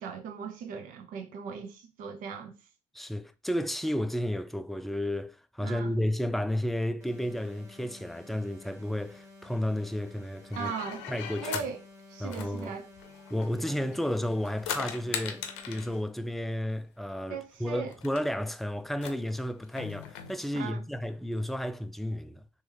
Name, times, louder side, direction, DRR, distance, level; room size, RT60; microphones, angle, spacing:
voice 1, 0.0-2.5 5.6-5.9 10.6-11.0 11.4-11.8 12.1-12.9 17.3-17.9 20.5-20.8, right 6 dB, 70° right, 0.8 m, -38 dB
voice 2, 2.9-10.7 11.1-11.5 12.2-12.8 13.3-22.4, left 1 dB, ahead, 0.4 m, -32 dB
sound 1, 7.0-16.0, left 3 dB, 20° right, 1.7 m, -52 dB
sound 2, 10.5-11.7 12.3-14.0 14.3-16.0 17.1-17.2 17.4-17.5 17.9-18.2 18.9-20.3, left 8 dB, 85° left, 0.6 m, -39 dB
3.1 x 3.1 x 3.4 m
supercardioid pair, 70°, 14 cm